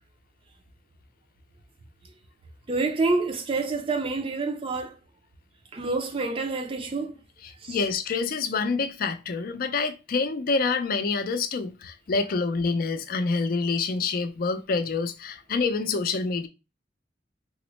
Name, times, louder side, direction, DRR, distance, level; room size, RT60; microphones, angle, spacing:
voice 1, 2.7-5.0 5.7-7.2 7.6-7.8, right 3 dB, 30° right, 0.4 m, -27 dB
voice 2, 7.4-16.5, left 4 dB, 55° left, 0.4 m, -27 dB
3.6 x 2.1 x 3.0 m
head